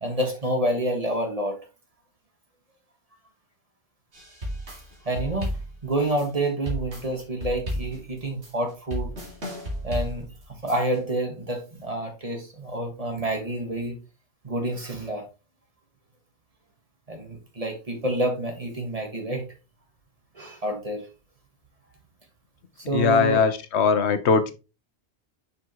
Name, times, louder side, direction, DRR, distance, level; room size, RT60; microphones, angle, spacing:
voice 1, 0.0-1.6 5.1-5.5 5.8-9.2 9.8-10.3 10.6-14.0 14.4-15.2 17.1-19.4 20.4-21.1 22.9-23.4, right 1 dB, 35° right, 1.7 m, -28 dB
sound 1, 4.1-11.0, equal, 80° right, 2.3 m, -33 dB
voice 2, 22.9-24.5, left 6 dB, 80° left, 1.0 m, -21 dB
6.2 x 5.8 x 2.9 m
omnidirectional pair, 1.1 m